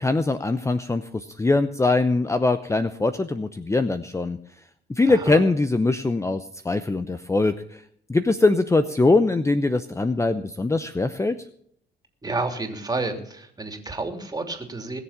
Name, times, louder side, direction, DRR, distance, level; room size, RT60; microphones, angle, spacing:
voice 1, 0.0-4.4 4.9-7.8 8.1-11.4, left 3 dB, 15° left, 11 dB, 0.7 m, -22 dB
voice 2, 5.1-5.4 12.2-15.0, right 3 dB, 20° right, 5 dB, 3.1 m, -30 dB
20.5 x 7.1 x 7.4 m, 0.65 s
cardioid pair, 90°, 20 cm